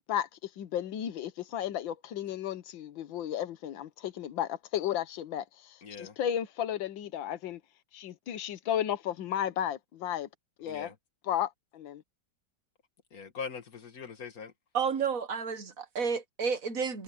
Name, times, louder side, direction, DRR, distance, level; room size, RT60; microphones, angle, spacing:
voice 1, 0.1-7.6 7.9-10.3 10.6-10.9 11.2-12.0, left 10 dB, 80° left, 1.8 m, -34 dB
voice 2, 5.8-6.1 10.7-10.9 13.1-14.5, left 5 dB, 50° left, 2.2 m, -41 dB
voice 3, 14.7-17.0, right 6 dB, 50° right, 1.5 m, -31 dB
omnidirectional pair, 2.0 m